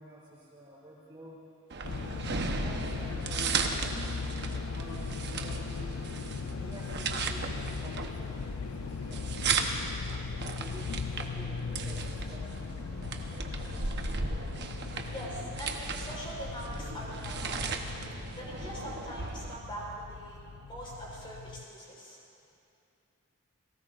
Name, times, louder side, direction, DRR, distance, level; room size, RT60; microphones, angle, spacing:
voice 1, 0.0-1.4 2.1-4.0 4.5-6.0 6.6-10.0 10.6-13.2 13.5-14.0 20.3-20.6, equal, 20° right, -6 dB, 3.9 m, -50 dB
sound 1, 1.7-19.5, right 4 dB, 50° right, 1.0 m, -36 dB
sound 2, 1.8-21.7, left 5 dB, 75° left, 0.5 m, -39 dB
sound 3, 8.6-17.0, equal, 45° left, 2.8 m, -52 dB
voice 2, 15.1-18.0 18.4-20.4 20.7-22.2, equal, 25° left, -5 dB, 4.2 m, -42 dB
29.0 x 18.5 x 2.5 m, 2.6 s
head